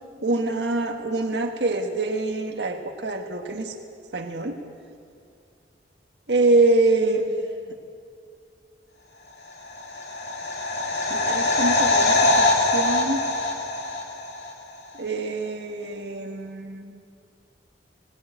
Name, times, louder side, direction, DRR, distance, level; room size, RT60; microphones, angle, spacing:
voice 1, 0.2-3.7 4.1-4.6 6.3-7.5 11.1-13.2 14.9-17.0, right 2 dB, 65° right, 3 dB, 1.7 m, -25 dB
sound 1, 9.6-14.5 14.8-14.9, left 2 dB, 65° left, 2.6 m, -23 dB
20.0 x 19.0 x 9.2 m, 2.4 s
head